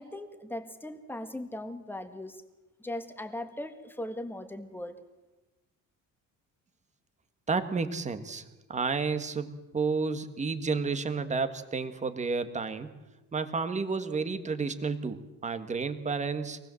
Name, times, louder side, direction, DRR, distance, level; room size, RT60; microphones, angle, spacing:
voice 1, 0.0-2.4 2.8-4.9, left 1 dB, 5° left, 8 dB, 1.7 m, -39 dB
voice 2, 7.5-8.4 8.7-12.9 13.3-16.6, right 4 dB, 20° right, 10 dB, 1.6 m, -31 dB
26.0 x 19.5 x 7.7 m, 1.1 s
cardioid pair, 165°, 34 cm